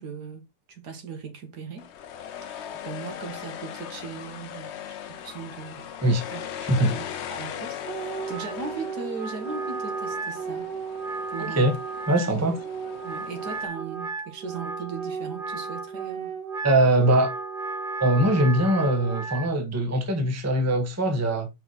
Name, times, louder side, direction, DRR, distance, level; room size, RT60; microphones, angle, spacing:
voice 1, 0.0-1.9 2.4-6.0 6.3-6.5 6.7-10.7 11.3-11.7 12.2-12.4 13.0-16.3, right 5 dB, 70° right, 1.9 m, -38 dB
sound 1, 1.8-13.7, left 9 dB, 70° left, 0.6 m, -39 dB
voice 2, 6.6-7.0 11.4-11.7 12.1-12.6 16.6-17.3 18.0-21.5, right 1 dB, 10° right, 0.8 m, -22 dB
Wind instrument woodwind instrument, 7.8-19.5, right 4 dB, 40° right, 0.9 m, -34 dB
5.4 x 4.5 x 3.8 m
omnidirectional pair, 1.8 m